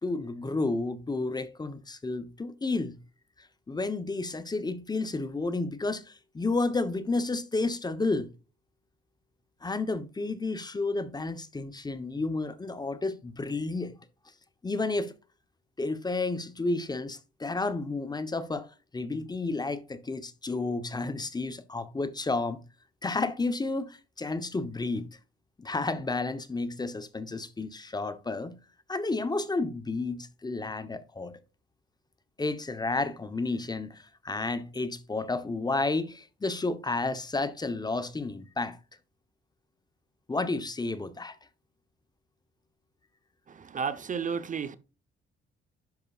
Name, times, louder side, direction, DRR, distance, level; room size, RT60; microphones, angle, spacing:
voice 1, 0.0-3.0 3.4-8.3 9.6-14.0 14.6-15.1 15.8-18.7 18.9-22.6 23.0-25.1 25.6-28.6 28.9-31.4 32.4-38.8 40.3-41.4, left 3 dB, 20° left, 0.8 m, -31 dB
voice 2, 43.7-44.7, right 6 dB, 40° right, 0.8 m, -31 dB
10.5 x 5.4 x 2.4 m
cardioid pair, 90°, 20 cm